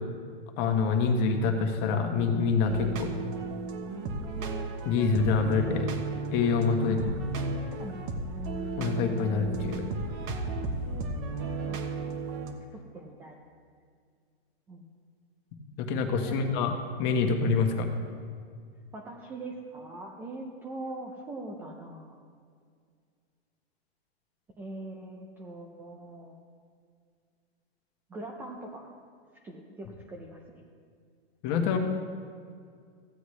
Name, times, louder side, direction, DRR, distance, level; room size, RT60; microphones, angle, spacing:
voice 1, 0.6-3.1 4.8-5.9 6.3-7.0 8.8-9.8 15.8-16.7 17.0-17.9 31.4-31.8, left 5 dB, 30° left, 4 dB, 1.3 m, -26 dB
sound 1, 2.6-12.5, right 3 dB, 30° right, 1.0 m, -34 dB
voice 2, 6.8-7.2 7.8-7.9 11.7-11.8 12.9-13.3 14.7-14.8 16.2-16.4 18.9-22.2 24.6-26.4 28.1-28.9 29.4-30.6, right 2 dB, 5° right, 1 dB, 0.4 m, -42 dB
15.0 x 7.9 x 3.2 m, 2.1 s
hypercardioid pair, 145°, 33 cm